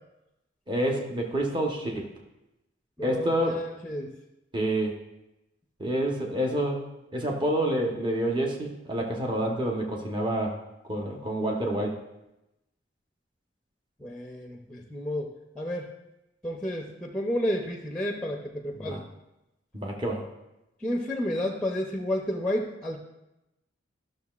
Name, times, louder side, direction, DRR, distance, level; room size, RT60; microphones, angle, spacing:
voice 1, 0.7-2.1 3.0-3.5 4.5-5.0 5.8-6.8 7.1-10.6 10.9-12.0 18.7-19.0 19.7-20.2, right 1 dB, 25° right, 0 dB, 1.0 m, -28 dB
voice 2, 3.0-4.1 14.0-15.9 16.4-19.0 20.8-23.0, left 1 dB, 5° left, 1 dB, 0.6 m, -31 dB
12.5 x 6.4 x 2.4 m, 0.92 s
head